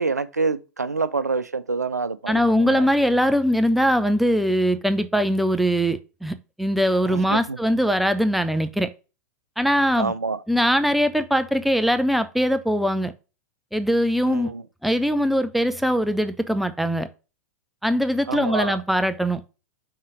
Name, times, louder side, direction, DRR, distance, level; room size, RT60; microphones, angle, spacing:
voice 1, 0.0-2.9 7.1-7.6 10.0-10.4 14.2-14.6 18.3-18.8, right 4 dB, 85° right, 0.5 m, -27 dB
voice 2, 2.3-8.9 9.6-10.1 10.5-13.1 13.7-14.5 14.8-17.1 17.8-19.4, equal, ahead, 0.6 m, -21 dB
5.5 x 4.0 x 4.7 m
figure-of-eight pair, 95°, 9 cm